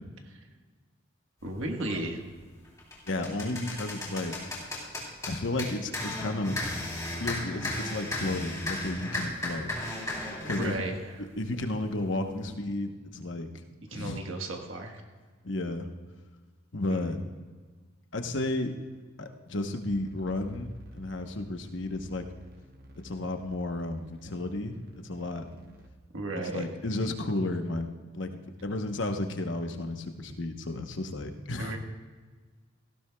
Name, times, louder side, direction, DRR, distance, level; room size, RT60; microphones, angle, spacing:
voice 1, 1.4-2.2 10.5-11.1 13.9-15.0 26.1-26.7 31.6-31.8, right 2 dB, 75° right, 2 dB, 1.4 m, -34 dB
sound 1, 1.8-2.0 2.5-10.7, left 1 dB, 15° left, 3.3 m, -35 dB
voice 2, 3.1-4.6 5.3-6.5 7.2-9.7 10.4-10.8 11.4-13.6 13.9-14.2 15.4-15.9 16.7-17.2 18.1-18.7 19.2-20.7 20.9-22.2 23.0-24.8 25.0-25.4 26.5-27.9 28.1-28.3 28.6-31.8, left 2 dB, 65° left, 5 dB, 1.0 m, -32 dB
sound 2, 19.9-25.9, equal, 45° right, 1.0 m, -52 dB
17.5 x 15.5 x 2.3 m, 1.4 s
head